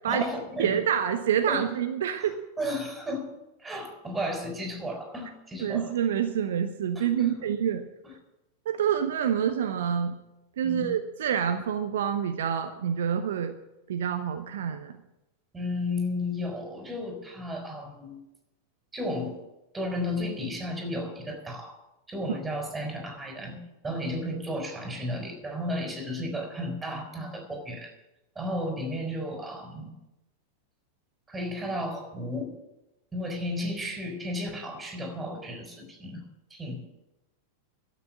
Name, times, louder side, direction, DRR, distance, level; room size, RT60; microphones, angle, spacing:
voice 1, 0.1-0.8 1.5-1.6 2.2-3.3 3.6-5.9 7.0-7.4 8.0-8.1 10.6-10.9 15.5-18.2 18.9-19.4 19.7-21.8 22.1-27.9 28.4-29.9 31.3-32.6 33.1-36.2 36.5-36.8, left 1 dB, 10° right, 3 dB, 4.2 m, -33 dB
voice 2, 0.6-2.4 5.6-7.8 8.6-10.1 10.6-13.5 13.9-14.9, right 8 dB, 60° right, 7 dB, 0.9 m, -27 dB
12.5 x 8.4 x 8.9 m, 0.94 s
figure-of-eight pair, 90°, 0 cm